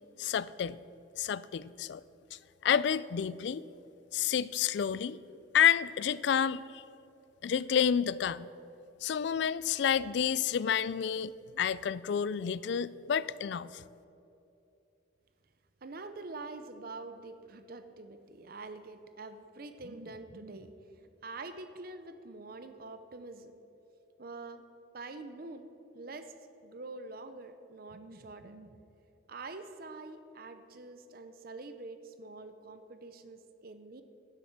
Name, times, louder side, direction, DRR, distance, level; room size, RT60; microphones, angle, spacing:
voice 1, 0.2-0.8 1.2-2.0 2.6-3.6 4.1-5.2 5.5-6.8 7.4-8.5 9.0-13.8, left 8 dB, 60° left, 18 dB, 0.3 m, -29 dB
voice 2, 15.8-20.7 21.2-23.5 24.2-24.6 24.9-26.3 26.6-28.8 29.3-34.0, right 3 dB, 50° right, 9 dB, 0.6 m, -45 dB
11.5 x 7.7 x 7.3 m, 2.8 s
head